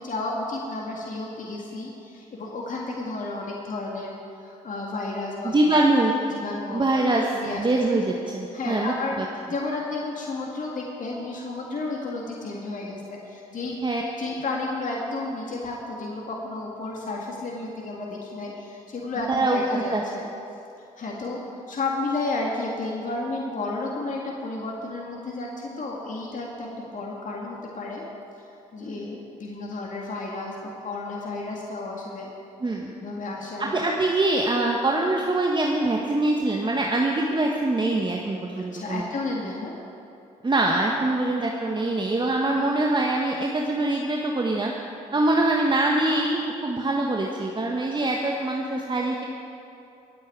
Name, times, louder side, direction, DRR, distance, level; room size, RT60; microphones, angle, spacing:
voice 1, 0.0-4.1 4.4-5.9 6.3-7.0 7.3-7.6 8.5-9.2 9.5-13.8 14.2-20.3 21.0-21.4 21.7-28.0 28.7-32.3 33.0-33.7 38.7-39.8, left 2 dB, 50° left, -2 dB, 2.2 m, -32 dB
voice 2, 5.4-6.1 6.7-7.2 7.5-9.2 13.8-14.0 19.3-20.0 28.8-29.0 32.6-32.9 33.6-39.1 40.4-44.7 45.1-49.2, right 2 dB, 30° right, 0 dB, 1.4 m, -24 dB
22.0 x 8.6 x 4.8 m, 2.7 s
hypercardioid pair, 50°, 17 cm